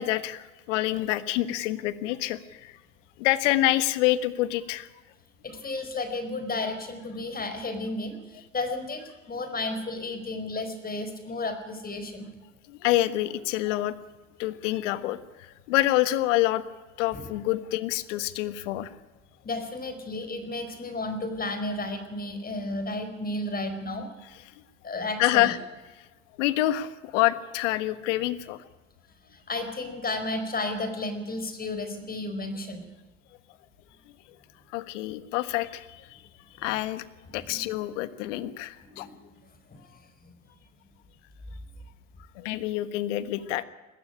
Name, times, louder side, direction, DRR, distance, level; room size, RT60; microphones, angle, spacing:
voice 1, 0.0-2.7 3.2-4.9 12.7-13.9 14.4-16.6 17.0-18.9 25.2-25.6 26.4-28.6 34.7-36.2 36.6-37.0 37.3-39.1 42.3-43.6, left 15 dB, 70° left, 14 dB, 1.5 m, -27 dB
voice 2, 5.4-12.3 17.1-17.2 19.4-24.1 24.8-25.6 29.3-32.8 36.7-36.8 37.2-37.8 38.8-39.4 39.7-39.8 40.2-40.3, left 2 dB, 25° left, 8 dB, 4.6 m, -33 dB
21.0 x 15.0 x 10.0 m, 1.2 s
hypercardioid pair, 85°, 37 cm